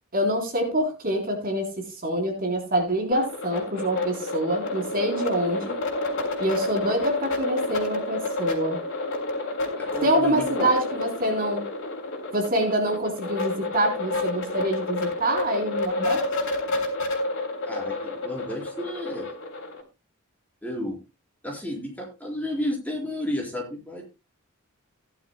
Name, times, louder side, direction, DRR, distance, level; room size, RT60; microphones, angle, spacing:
voice 1, 0.1-1.7 2.0-5.7 6.4-8.8 10.0-11.6 12.3-16.2, right 1 dB, 45° right, 2 dB, 3.7 m, -26 dB
sound 1, 3.1-19.8, left 2 dB, 60° left, 3.2 m, -30 dB
voice 2, 5.5-5.8 9.8-10.7 17.6-19.3 20.6-21.0 21.4-24.0, left 1 dB, 5° left, -1 dB, 4.0 m, -32 dB
17.0 x 11.0 x 2.2 m, 0.26 s
head